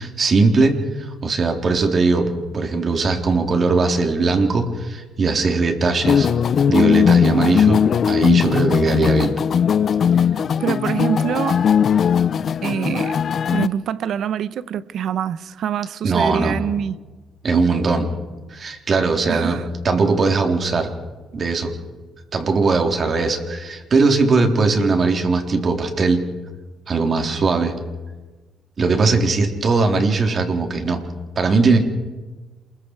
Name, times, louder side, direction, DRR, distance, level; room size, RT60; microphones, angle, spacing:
voice 1, 0.0-6.3 6.7-7.8 8.1-9.3 16.0-16.6 17.4-18.1 18.5-19.6 19.8-20.9 21.3-21.7 22.3-26.2 26.9-27.7 28.8-31.0 31.4-31.8, right 3 dB, 45° right, 3.9 m, -19 dB
sound 1, 6.0-13.7, left 7 dB, 55° left, 0.6 m, -18 dB
voice 2, 10.1-11.6 12.6-13.2 13.5-17.0 19.3-19.6, right 8 dB, 70° right, 1.0 m, -25 dB
28.0 x 22.0 x 4.9 m
cardioid pair, 90°, 0 cm